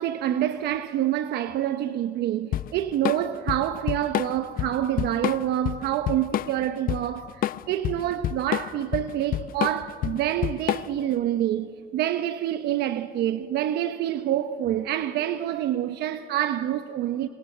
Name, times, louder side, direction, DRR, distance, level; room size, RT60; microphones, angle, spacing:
voice 1, 0.0-17.3, right 12 dB, 80° right, 1.0 m, -27 dB
Drum kit / Drum, 2.5-11.1, left 12 dB, 60° left, 0.6 m, -28 dB
26.5 x 26.0 x 8.0 m
cardioid pair, 110°, 17 cm